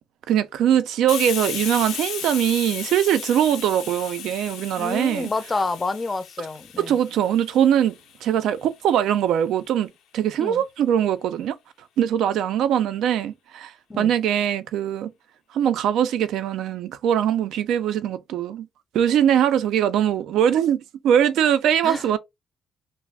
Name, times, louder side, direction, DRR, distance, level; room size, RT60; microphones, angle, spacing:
voice 1, 0.3-5.3 6.9-7.9 8.2-11.6 12.0-13.7 14.0-15.1 15.5-18.7 18.9-22.2, right 10 dB, 80° right, 0.4 m, -21 dB
Hiss, 1.1-8.5, left 9 dB, 85° left, 0.4 m, -35 dB
voice 2, 4.8-7.0 10.4-10.6 13.9-14.1 21.8-22.1, left 3 dB, 30° left, 0.4 m, -28 dB
2.4 x 2.0 x 3.2 m
cardioid pair, 90°, 0 cm